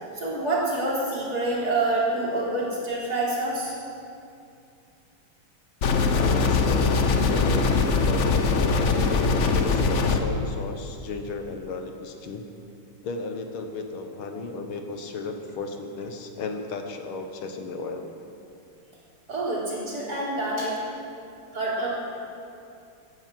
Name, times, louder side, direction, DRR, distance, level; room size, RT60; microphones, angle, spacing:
voice 1, 0.0-3.8 19.3-20.8 21.5-21.9, right 2 dB, 45° right, -6 dB, 4.1 m, -27 dB
sound 1, 5.8-10.2, left 4 dB, 55° left, 0.8 m, -22 dB
voice 2, 6.1-12.4 13.0-18.1, left 3 dB, 75° left, 5 dB, 1.9 m, -35 dB
14.5 x 11.0 x 7.5 m, 2.5 s
omnidirectional pair, 2.4 m